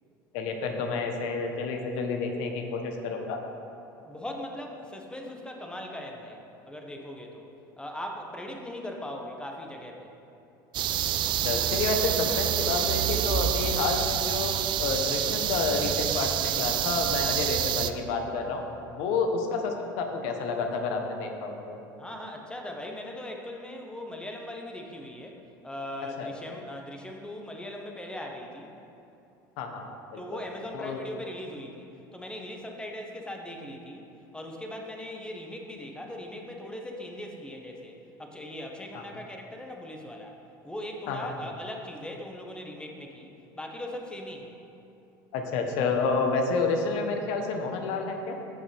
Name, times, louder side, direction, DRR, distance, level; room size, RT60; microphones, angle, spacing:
voice 1, 0.3-3.4 11.4-14.5 14.8-21.8 26.2-26.5 29.6-29.8 30.1-30.4 30.7-31.1 38.9-39.0 41.1-41.3 45.3-48.3, left 4 dB, 65° left, 4 dB, 1.1 m, -29 dB
voice 2, 4.0-7.5 7.8-10.1 22.0-28.7 30.2-34.1 34.3-40.4 40.6-44.5, left 1 dB, 10° left, 2 dB, 1.3 m, -39 dB
sound 1, 10.7-17.9, right 10 dB, 45° right, 0.4 m, -27 dB
15.0 x 5.3 x 3.5 m, 2.9 s
hypercardioid pair, 80°, 11 cm